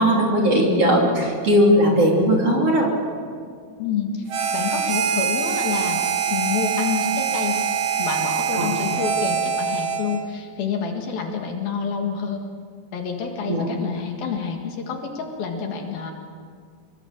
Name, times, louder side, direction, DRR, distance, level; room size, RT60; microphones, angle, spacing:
voice 1, 0.0-2.9 8.5-8.7 13.5-13.6, equal, 35° right, -1 dB, 3.8 m, -18 dB
voice 2, 3.8-6.0 6.3-7.6 8.0-12.4 12.9-16.1, left 6 dB, 60° left, 2 dB, 3.4 m, -28 dB
Harmonica, 4.3-10.3, right 7 dB, 65° right, 1.6 m, -24 dB
26.0 x 23.0 x 7.4 m, 2.1 s
omnidirectional pair, 5.2 m